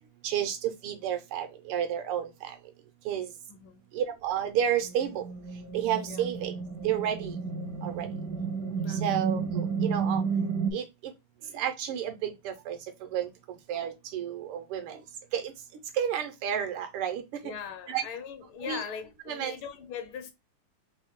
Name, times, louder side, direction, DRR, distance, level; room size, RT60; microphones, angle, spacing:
voice 1, 0.2-2.3 3.1-3.3 3.9-5.2 5.7-6.5 6.8-7.3 7.8-8.1 9.0-10.2 10.7-10.8 11.5-12.8 13.1-13.3 13.7-15.0 15.3-15.4 16.0-17.2 17.9-18.0 18.6-18.8 19.3-19.5, right 9 dB, 85° right, 1.6 m, -30 dB
voice 2, 3.5-3.9 6.0-6.3 8.7-9.4 17.4-20.3, left 7 dB, 75° left, 1.4 m, -41 dB
sound 1, 4.8-10.7, right 5 dB, 65° right, 0.9 m, -32 dB
3.8 x 2.6 x 3.6 m
omnidirectional pair, 2.4 m